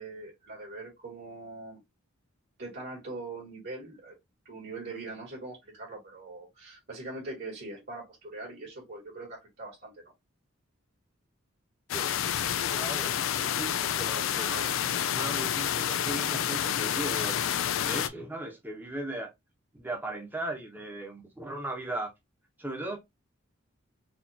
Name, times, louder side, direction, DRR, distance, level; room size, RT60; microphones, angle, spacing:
voice 1, 0.0-1.8 2.6-4.2 4.5-10.1, right 2 dB, 55° right, 2.1 m, -42 dB
sound 1, 11.9-18.1, left 10 dB, 70° left, 0.4 m, -29 dB
voice 2, 12.6-17.4 17.8-19.3 19.7-22.1 22.6-23.0, right 2 dB, 10° right, 1.0 m, -37 dB
4.2 x 2.6 x 2.8 m
head